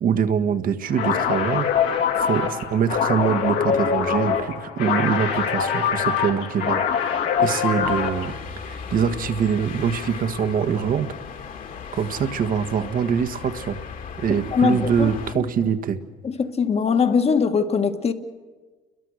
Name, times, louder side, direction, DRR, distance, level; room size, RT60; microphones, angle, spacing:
voice 1, 0.0-8.3 8.6-11.1 11.9-13.8 14.2-16.0, right 7 dB, 55° right, 8 dB, 1.7 m, -24 dB
sound 1, 0.9-8.3, left 7 dB, 75° left, 2.8 m, -23 dB
sound 2, 7.8-15.3, left 6 dB, 55° left, 2.6 m, -36 dB
voice 2, 14.5-15.5 16.2-18.1, left 6 dB, 40° left, 7 dB, 1.7 m, -21 dB
30.0 x 22.5 x 6.5 m, 1.3 s
cardioid pair, 110°, 17 cm